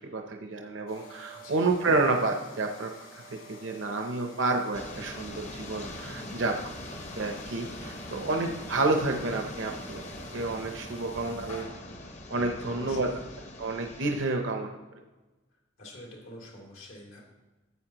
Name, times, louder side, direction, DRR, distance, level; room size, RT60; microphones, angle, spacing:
voice 1, 0.1-2.9 3.5-6.5 7.2-10.0 10.3-11.7 12.3-13.1 13.6-14.7, right 3 dB, 60° right, 3 dB, 0.7 m, -29 dB
sound 1, 0.9-11.6, right 2 dB, 65° left, 2.8 m, -50 dB
sound 2, 4.7-14.2, left 1 dB, 35° left, 0.8 m, -42 dB
voice 2, 6.0-6.5 12.6-13.2 15.8-17.2, left 1 dB, 80° left, -2 dB, 2.8 m, -46 dB
12.5 x 8.0 x 2.9 m, 1.2 s
head